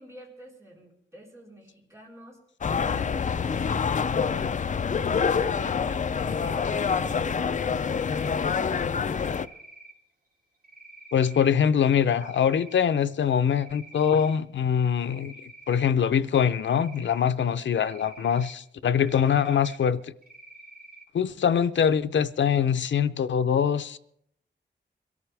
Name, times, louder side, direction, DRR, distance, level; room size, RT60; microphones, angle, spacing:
voice 1, 0.0-2.4 2.9-4.7 5.3-8.3, equal, 15° right, 4.1 m, -48 dB
sound 1, 2.6-9.5, left 6 dB, 45° left, 0.4 m, -26 dB
Cricket, 6.3-7.2 7.7-8.6 9.1-9.9 10.6-11.5 11.9-12.9 13.2-14.4 15.0-15.8 16.3-17.2 17.7-18.5 18.9-19.8 20.2-21.0, right 2 dB, 50° right, 2.7 m, -48 dB
voice 2, 11.1-20.0 21.1-24.0, left 8 dB, 85° left, 0.6 m, -23 dB
23.0 x 13.5 x 3.4 m
wide cardioid pair, 155°, 19 cm